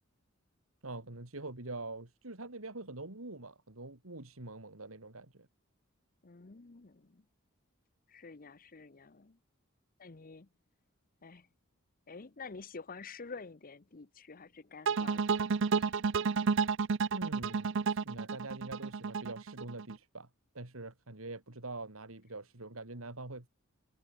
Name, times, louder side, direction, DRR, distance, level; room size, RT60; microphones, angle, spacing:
voice 1, 0.8-5.5 17.1-20.3 20.5-23.5, right 2 dB, 85° right, 3.0 m, -44 dB
voice 2, 6.2-7.3 8.1-9.4 10.0-10.5 11.2-11.5 12.1-15.4 15.8-15.9, left 4 dB, 45° left, 0.9 m, -49 dB
sound 1, 14.9-20.0, right 5 dB, 65° right, 0.6 m, -31 dB
head